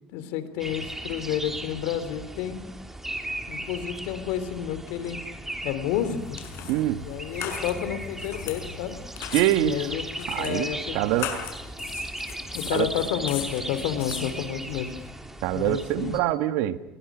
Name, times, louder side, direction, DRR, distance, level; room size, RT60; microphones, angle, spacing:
voice 1, 0.1-2.6 3.5-5.2 5.6-6.4 7.0-8.9 9.6-11.0 12.5-14.9 15.5-16.2, left 10 dB, 85° left, 3.2 m, -30 dB
sound 1, 0.6-16.2, right 1 dB, 10° right, 3.2 m, -37 dB
sound 2, 5.9-15.1, left 9 dB, 70° left, 6.1 m, -39 dB
voice 2, 6.6-7.0 9.3-9.8 10.3-11.4 12.7-12.9 15.4-16.8, right 14 dB, 80° right, 1.6 m, -25 dB
29.5 x 23.0 x 6.2 m
cardioid pair, 110°, 4 cm